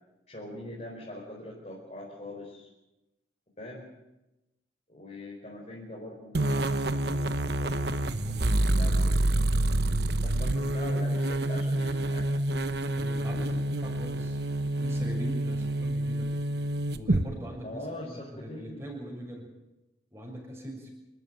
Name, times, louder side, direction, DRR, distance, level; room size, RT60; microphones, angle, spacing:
voice 1, 0.3-2.7 3.6-3.8 4.9-7.8 8.3-9.1 10.2-12.3 17.6-19.0, left 1 dB, 35° left, -4 dB, 5.0 m, -43 dB
sound 1, 6.3-17.2, right 1 dB, 65° right, 1.1 m, -27 dB
voice 2, 13.0-14.4 14.8-16.3 16.9-19.5 20.1-20.9, equal, 15° right, -1 dB, 6.7 m, -41 dB
28.0 x 13.0 x 9.4 m, 0.99 s
head